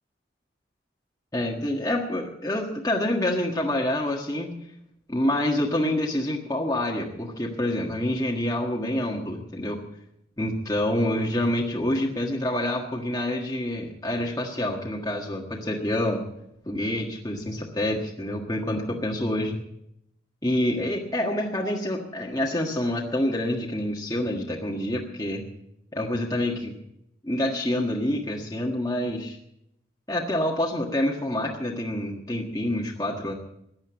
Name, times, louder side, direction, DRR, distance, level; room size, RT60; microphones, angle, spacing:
voice 1, 1.3-4.6 5.1-9.8 10.4-16.3 16.7-19.6 20.4-25.4 25.9-26.7 27.2-29.4 30.1-33.3, left 1 dB, 20° left, -2 dB, 1.6 m, -27 dB
15.5 x 10.5 x 7.0 m, 0.78 s
head